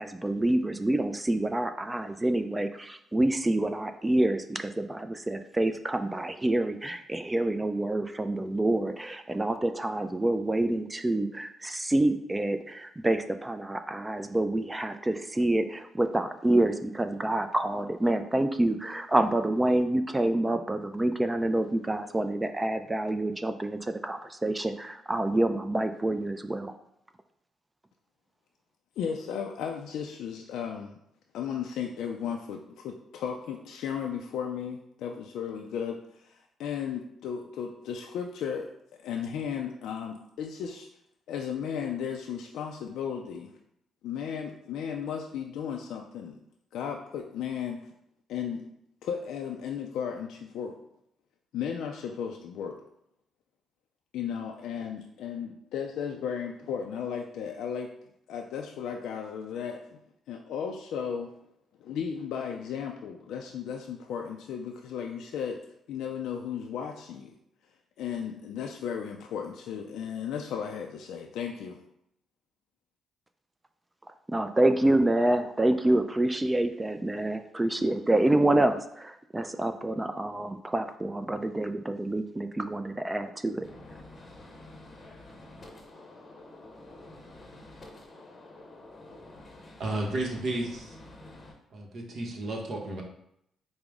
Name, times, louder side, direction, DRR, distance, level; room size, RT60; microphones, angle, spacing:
voice 1, 0.0-26.7 74.3-83.6, right 1 dB, 15° right, 9 dB, 0.3 m, -27 dB
voice 2, 29.0-30.9 31.3-38.7 39.0-40.9 41.3-43.5 44.0-46.4 46.7-47.8 48.3-48.7 49.0-50.8 51.5-52.8 54.1-57.9 58.3-60.0 60.3-61.3 61.8-65.6 65.9-67.4 68.0-71.8, left 7 dB, 80° left, 2 dB, 0.3 m, -35 dB
Gunshot gunfire, 83.6-91.5, left 2 dB, 30° left, 0.7 m, -49 dB
voice 3, 89.8-91.0 91.7-93.0, right 2 dB, 60° right, 0 dB, 0.9 m, -32 dB
4.8 x 2.0 x 3.4 m, 0.76 s
cardioid pair, 90°, 0 cm